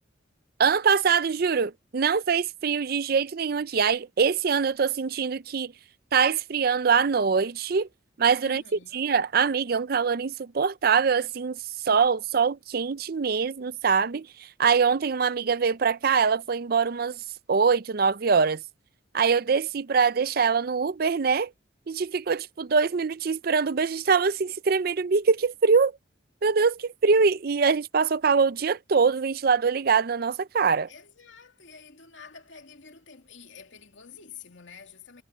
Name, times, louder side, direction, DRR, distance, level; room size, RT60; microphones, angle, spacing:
voice 1, 0.6-5.7 6.1-7.9 8.2-11.6 11.8-17.2 17.5-18.6 19.1-21.5 21.9-25.9 26.4-30.9, right 5 dB, 50° right, 0.5 m, -23 dB
voice 2, 8.4-9.0 30.9-35.2, left 6 dB, 80° left, 2.7 m, -48 dB
head